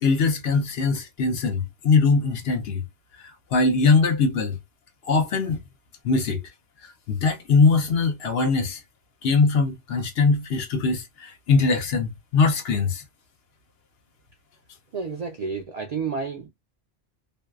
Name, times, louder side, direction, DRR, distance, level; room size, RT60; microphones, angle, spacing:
voice 1, 0.0-2.8 3.5-4.6 5.0-5.6 6.0-6.4 6.8-8.8 9.2-13.0, left 4 dB, 70° left, 0.8 m, -21 dB
voice 2, 14.9-16.5, right 5 dB, 55° right, 0.4 m, -30 dB
2.6 x 2.2 x 2.2 m
omnidirectional pair, 1.1 m